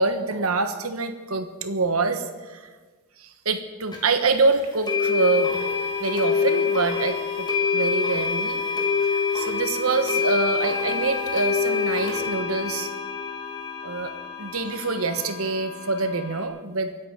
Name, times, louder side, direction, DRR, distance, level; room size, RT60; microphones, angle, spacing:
voice 1, 0.0-2.7 3.2-5.7 6.0-8.6 9.3-12.9 13.8-14.1 14.4-16.9, right 3 dB, 85° right, 8 dB, 1.4 m, -25 dB
sound 1, 3.9-4.0 4.9-16.4, left 5 dB, 20° left, 2.5 m, -26 dB
24.5 x 8.7 x 5.2 m, 1.3 s
head